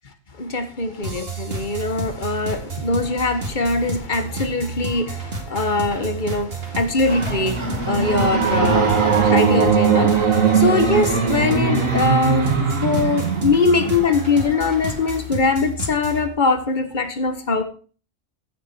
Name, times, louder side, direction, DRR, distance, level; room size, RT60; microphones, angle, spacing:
voice 1, 0.4-12.5 12.8-17.6, left 3 dB, 40° left, 8 dB, 1.6 m, -22 dB
sound 1, 1.0-16.3, right 3 dB, 50° right, 2.4 m, -31 dB
sound 2, 6.9-14.2, right 6 dB, 85° right, 2.0 m, -20 dB
sound 3, 7.0-15.3, right 2 dB, 20° right, 1.6 m, -34 dB
14.5 x 7.1 x 4.5 m, 0.39 s
omnidirectional pair, 1.3 m